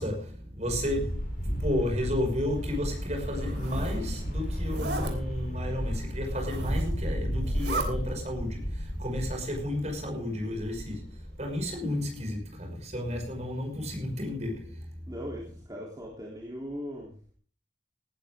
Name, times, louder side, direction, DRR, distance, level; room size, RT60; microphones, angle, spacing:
voice 1, 0.0-15.0, left 1 dB, 35° right, 5.8 m, -32 dB
sound 1, 0.7-10.1 10.4-11.7, equal, 45° left, 4.9 m, -34 dB
Zipper (clothing), 3.2-4.0 4.6-5.1 6.2-7.0 7.4-7.9, right 3 dB, 60° right, 3.4 m, -36 dB
voice 2, 15.1-17.3, equal, 20° right, 3.3 m, -39 dB
18.5 x 13.0 x 3.7 m
head